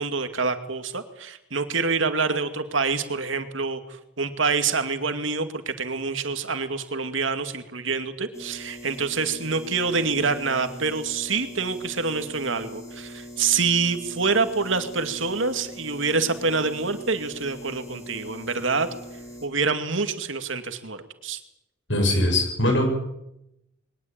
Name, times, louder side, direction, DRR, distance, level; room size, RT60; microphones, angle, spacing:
voice 1, 0.0-18.9 19.4-21.4, right 4 dB, 80° right, 8 dB, 2.4 m, -26 dB
sound 1, 8.3-19.5, equal, 15° left, 4.4 m, -42 dB
voice 2, 21.9-22.9, left 1 dB, 65° left, 5 dB, 7.0 m, -21 dB
22.0 x 19.5 x 8.9 m, 0.86 s
head